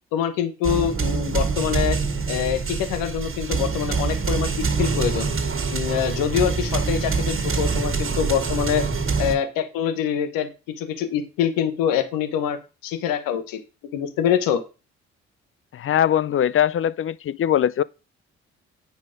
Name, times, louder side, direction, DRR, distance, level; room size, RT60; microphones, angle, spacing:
voice 1, 0.1-2.0 2.3-4.5 4.8-5.3 5.7-8.8 9.2-10.5 10.8-12.6 12.8-13.6 13.9-14.6, left 9 dB, 75° left, 1.2 m, -24 dB
sound 1, 0.6-9.3, right 4 dB, 40° right, 1.7 m, -25 dB
voice 2, 15.7-17.8, left 10 dB, 40° left, 0.5 m, -21 dB
8.1 x 5.2 x 5.1 m
hypercardioid pair, 45°, 34 cm